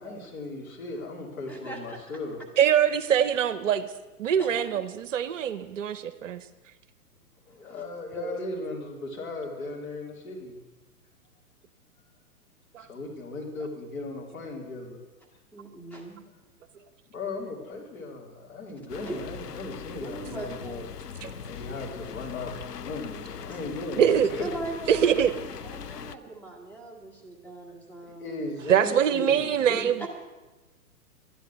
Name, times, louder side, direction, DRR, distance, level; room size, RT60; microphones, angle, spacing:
voice 1, 0.0-2.4 7.5-10.6 12.8-15.0 17.1-20.9 21.5-24.5 28.0-29.9, left 2 dB, 60° left, -1 dB, 3.5 m, -37 dB
voice 2, 1.5-2.0 4.4-4.9 7.5-7.8 8.1-8.3 15.5-16.2 19.0-19.4 20.0-20.8 23.5-23.6 24.4-28.4 30.0-30.1, right 2 dB, 5° left, -1 dB, 1.8 m, -40 dB
voice 3, 2.6-3.9 4.2-6.4 12.7-12.9 21.2-21.3 24.0-24.3 24.9-25.3 28.7-30.1, right 9 dB, 55° right, 13 dB, 0.8 m, -23 dB
sound 1, 18.9-26.2, left 8 dB, 85° left, 0.7 m, -41 dB
12.0 x 10.5 x 6.3 m, 1.2 s
figure-of-eight pair, 115°, 46 cm